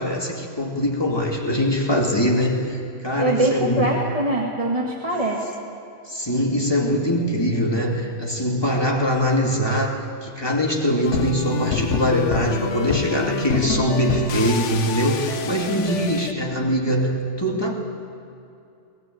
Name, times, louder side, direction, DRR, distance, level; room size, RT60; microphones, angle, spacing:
voice 1, 0.0-3.9 6.1-10.0 10.2-17.7, equal, 20° left, -1 dB, 2.7 m, -22 dB
voice 2, 3.2-5.4, right 1 dB, 30° right, -2 dB, 2.1 m, -23 dB
sound 1, 11.0-16.3, left 6 dB, 85° left, 1.2 m, -27 dB
20.0 x 19.5 x 9.3 m, 2.6 s
omnidirectional pair, 1.2 m